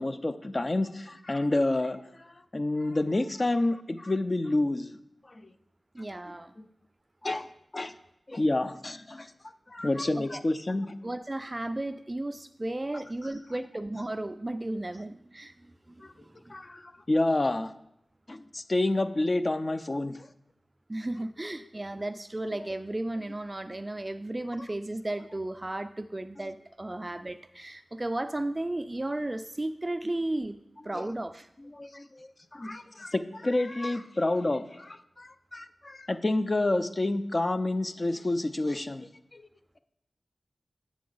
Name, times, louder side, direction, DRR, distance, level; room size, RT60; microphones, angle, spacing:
voice 1, 0.0-4.9 5.3-5.4 6.6-6.7 7.2-7.5 7.7-7.9 8.3-9.3 9.7-10.9 16.0-16.1 16.5-17.7 18.3-20.2 30.9-31.0 31.8-39.5, left 2 dB, 40° left, 10 dB, 0.5 m, -29 dB
voice 2, 5.9-6.5 10.2-10.4 11.0-16.6 20.9-30.6 30.8-31.5, right 1 dB, 25° right, 11 dB, 0.3 m, -34 dB
8.4 x 6.1 x 3.9 m, 0.78 s
wide cardioid pair, 65°, 0 cm